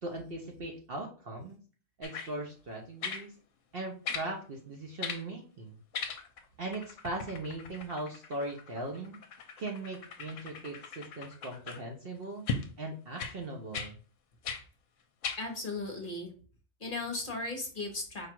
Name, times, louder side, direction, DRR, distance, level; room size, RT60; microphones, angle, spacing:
voice 1, 0.0-1.6 2.0-3.3 3.7-5.8 6.6-9.2 9.6-12.4 12.8-13.9, right 2 dB, 50° right, 1 dB, 0.8 m, -39 dB
sound 1, 2.0-2.3 3.0-3.3 4.1-4.3 5.0-5.2 5.9-6.4 6.7-11.8 12.5-12.7 13.2-13.4 13.7-13.9 14.4-14.6 15.2-15.4 16.1-16.2, left 5 dB, 65° left, 1.0 m, -38 dB
voice 2, 15.4-16.3 16.8-18.3, left 2 dB, 40° left, 2 dB, 1.0 m, -36 dB
4.9 x 2.4 x 4.4 m, 0.39 s
omnidirectional pair, 1.5 m